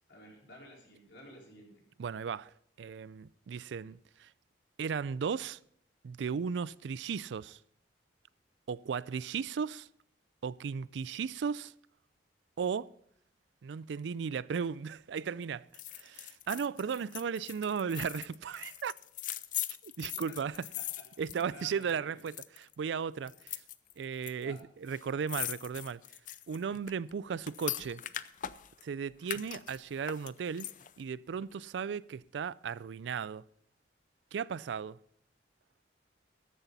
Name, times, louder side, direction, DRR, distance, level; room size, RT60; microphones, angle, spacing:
voice 1, 0.1-1.7 20.8-20.9 21.2-22.2 24.4-24.6, left 1 dB, 75° left, 4.5 m, -52 dB
voice 2, 2.0-2.5 2.8-4.3 4.8-5.6 6.0-7.6 8.7-9.9 10.4-11.7 12.6-12.9 13.6-15.7 15.9-18.9 19.8-20.6 21.2-23.6 24.0-26.0 26.5-28.0 28.8-30.7 31.0-33.4 34.3-35.0, right 6 dB, 80° right, 0.4 m, -36 dB
sound 1, 15.7-21.9 22.2-22.7 23.3-24.3 24.6-24.7 24.9-28.9 29.2-31.0 31.4-31.5, left 12 dB, 50° left, 0.5 m, -41 dB
14.0 x 11.0 x 4.1 m
head